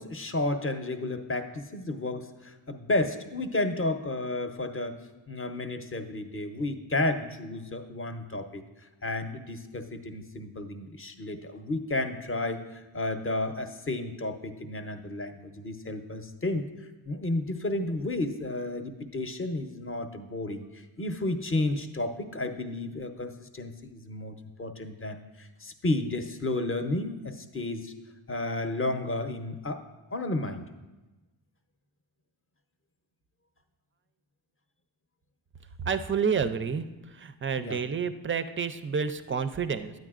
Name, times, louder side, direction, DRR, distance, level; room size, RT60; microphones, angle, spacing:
voice 1, 0.0-5.0 5.3-8.6 9.0-16.7 17.1-27.9 28.3-29.8 30.1-30.7 37.6-37.8, left 2 dB, 25° left, 6 dB, 0.7 m, -32 dB
voice 2, 35.8-36.8 37.1-39.9, right 6 dB, 25° right, 11 dB, 0.4 m, -29 dB
9.1 x 8.6 x 2.4 m, 1.1 s
supercardioid pair, 50°, 48 cm